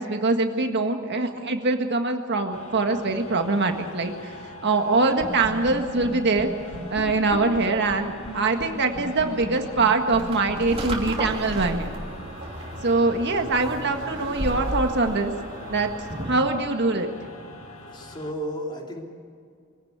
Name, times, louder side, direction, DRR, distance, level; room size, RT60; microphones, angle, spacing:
voice 1, 0.0-4.3 4.6-6.5 6.9-11.9 12.8-15.3 15.7-15.9 16.3-17.1, right 3 dB, 55° right, 5 dB, 1.8 m, -23 dB
sound 1, 2.5-18.3, left 1 dB, 80° left, 2.0 m, -43 dB
sound 2, 5.2-5.7 6.0-6.1 6.4-6.5 6.7-8.3 8.6-8.7 8.9-11.9, equal, 55° left, 5.2 m, -36 dB
opening window, 10.1-16.5, right 1 dB, 30° right, 3.3 m, -33 dB
voice 2, 17.9-19.0, equal, 20° left, 0 dB, 3.5 m, -33 dB
23.5 x 17.0 x 8.1 m, 2.3 s
head